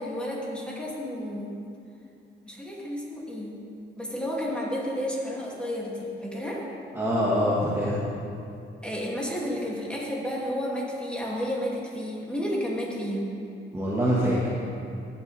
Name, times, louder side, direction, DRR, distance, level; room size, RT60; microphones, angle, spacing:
voice 1, 0.0-1.5 2.4-3.6 4.0-6.6 8.8-13.3, equal, 5° left, -4 dB, 2.5 m, -31 dB
voice 2, 6.9-8.0 13.7-14.5, equal, 10° right, -7 dB, 1.6 m, -24 dB
16.0 x 7.1 x 3.4 m, 2.6 s
cardioid pair, 90°, 20 cm